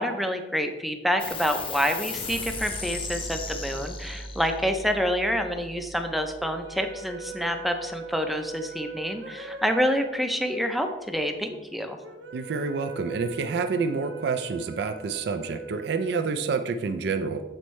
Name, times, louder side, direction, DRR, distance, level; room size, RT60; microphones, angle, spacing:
voice 1, 0.0-12.0, equal, ahead, 6 dB, 0.4 m, -27 dB
sound 1, 1.2-8.1, left 3 dB, 30° left, 0.7 m, -37 dB
sound 2, 6.4-16.8, right 3 dB, 85° right, 0.9 m, -42 dB
voice 2, 12.3-17.4, right 4 dB, 65° right, 8 dB, 0.3 m, -28 dB
7.8 x 4.3 x 3.1 m, 1.1 s
head